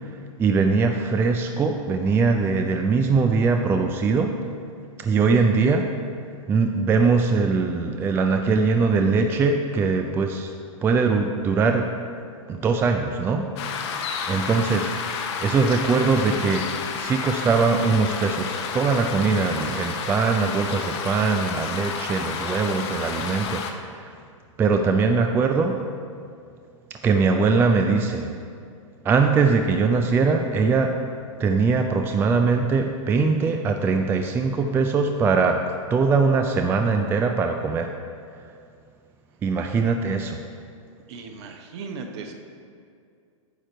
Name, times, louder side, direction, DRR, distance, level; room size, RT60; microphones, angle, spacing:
voice 1, 0.0-4.4 5.0-5.9 6.5-10.5 10.8-12.0 12.5-14.0 14.3-14.9 15.4-16.7 16.9-24.1 24.6-25.8 26.9-28.3 29.0-31.0 31.4-35.6 35.9-37.9 39.4-40.4, right 4 dB, 15° right, 5 dB, 0.3 m, -21 dB
sound 1, 13.6-23.7, left 6 dB, 55° left, 0.8 m, -31 dB
voice 2, 41.1-42.3, right 4 dB, 55° right, 4 dB, 1.0 m, -37 dB
9.2 x 5.0 x 4.4 m, 2.3 s
hypercardioid pair, 120°, 17 cm